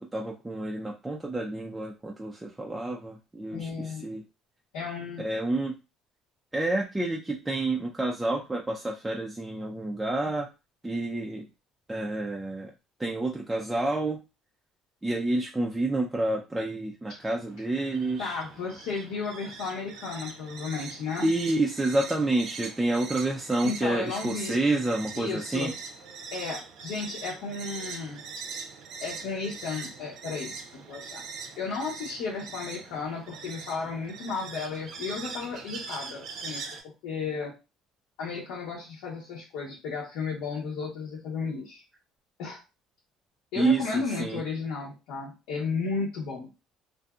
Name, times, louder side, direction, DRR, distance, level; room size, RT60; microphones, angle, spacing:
voice 1, 0.0-4.2 5.2-5.7 6.5-10.5 10.8-11.5 11.9-12.7 13.0-14.2 15.0-18.4 21.2-25.7 43.6-44.4, right 2 dB, 10° right, -1 dB, 0.3 m, -29 dB
voice 2, 3.5-4.1 4.7-5.2 17.1-17.2 18.2-21.3 23.6-24.6 25.1-25.7 26.3-28.2 29.0-31.2 31.6-36.8 37.0-37.5 38.2-41.8 42.4-42.6 43.5-46.5, left 4 dB, 85° left, -5 dB, 0.9 m, -34 dB
sound 1, 17.1-36.8, right 5 dB, 55° right, 0.6 m, -42 dB
2.6 x 2.5 x 2.3 m, 0.28 s
cardioid pair, 140°, 0 cm